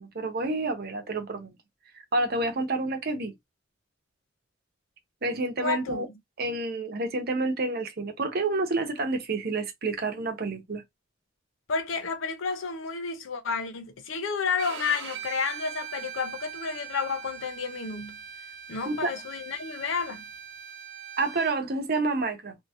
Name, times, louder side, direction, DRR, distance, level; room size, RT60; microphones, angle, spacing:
voice 1, 0.0-1.6 2.1-3.3 5.2-6.1 6.4-10.8 18.9-19.1 21.2-22.6, right 2 dB, 55° right, 0.9 m, -29 dB
voice 2, 5.6-6.0 11.7-18.1 18.7-20.2, left 5 dB, 75° left, 0.6 m, -31 dB
Bowed string instrument, 14.6-21.5, right 8 dB, 85° right, 0.9 m, -41 dB
2.8 x 2.8 x 2.5 m
head